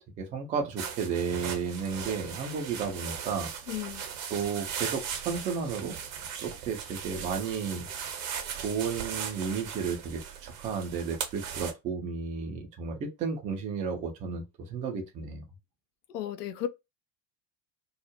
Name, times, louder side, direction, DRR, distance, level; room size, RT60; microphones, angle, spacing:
voice 1, 0.2-3.5 4.3-5.9 6.4-7.9 8.5-14.4 14.7-15.4, right 6 dB, 15° right, 0.4 m, -33 dB
sound 1, 0.8-11.7, right 7 dB, 55° right, 0.8 m, -38 dB
voice 2, 3.7-4.0 16.1-16.7, left 11 dB, 70° left, 0.5 m, -34 dB
2.3 x 2.0 x 2.9 m
figure-of-eight pair, 70°, 50 cm